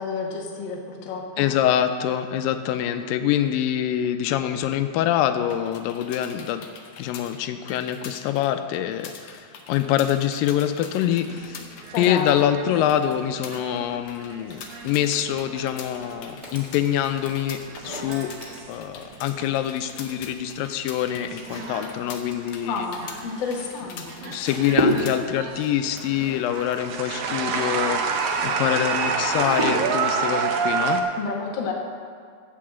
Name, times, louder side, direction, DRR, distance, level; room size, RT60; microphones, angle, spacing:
voice 1, 0.0-1.5 11.9-12.3 22.6-24.3 31.2-31.7, left 5 dB, 55° left, 0 dB, 1.3 m, -30 dB
voice 2, 1.4-6.7 7.0-11.6 12.0-18.3 18.7-22.9 24.3-28.0 28.4-31.0, left 10 dB, 90° left, 9 dB, 2.3 m, -25 dB
sound 1, 5.4-25.2, left 6 dB, 75° left, 1.4 m, -44 dB
sound 2, 11.2-16.5 16.9-19.7 20.1-20.5 21.1-23.7 24.1-31.0, right 5 dB, 85° right, 1.3 m, -29 dB
sound 3, 16.4-19.3 20.3-28.5 28.8-30.0, equal, 40° right, 0.4 m, -32 dB
8.6 x 7.8 x 7.5 m, 2.1 s
omnidirectional pair, 3.9 m